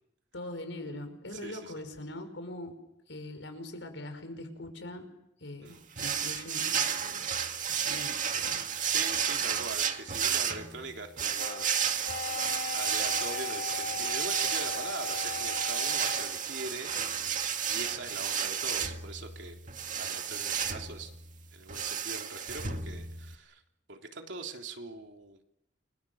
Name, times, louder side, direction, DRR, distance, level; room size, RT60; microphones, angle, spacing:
voice 1, 0.3-2.7 3.1-5.1 5.4-7.2 7.8-8.6, left 1 dB, 80° left, 7 dB, 5.7 m, -42 dB
voice 2, 1.3-1.7 5.6-5.8 8.8-12.4 12.7-17.4 17.7-19.6 20.0-21.1 21.5-23.6 23.9-25.4, right 3 dB, 70° right, 3 dB, 3.4 m, -42 dB
sound 1, 6.0-23.3, right 8 dB, 45° right, 2.1 m, -32 dB
sound 2, 11.3-16.4, left 5 dB, 50° left, 1.1 m, -38 dB
29.5 x 23.5 x 7.3 m, 0.82 s
head